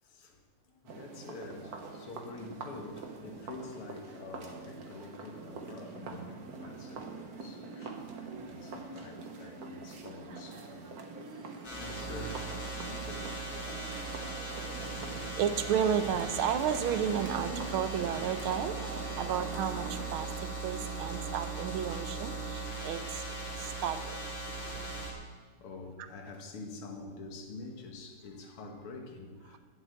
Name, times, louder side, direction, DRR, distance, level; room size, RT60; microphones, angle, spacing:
voice 1, 0.0-12.5 12.8-13.4 14.2-14.4 14.7-15.0 20.8-21.0 22.9-23.0 24.5-25.1 25.6-29.6, left 3 dB, 80° left, 4 dB, 2.3 m, -47 dB
sound 1, 0.9-20.2, right 3 dB, 50° right, 1.5 m, -44 dB
sound 2, 11.6-25.1, right 3 dB, 60° left, 3.2 m, -39 dB
voice 2, 15.4-20.3 20.6-23.2 23.6-24.2, right 8 dB, 80° right, 10 dB, 1.5 m, -32 dB
11.5 x 7.3 x 8.4 m, 1.5 s
omnidirectional pair, 2.4 m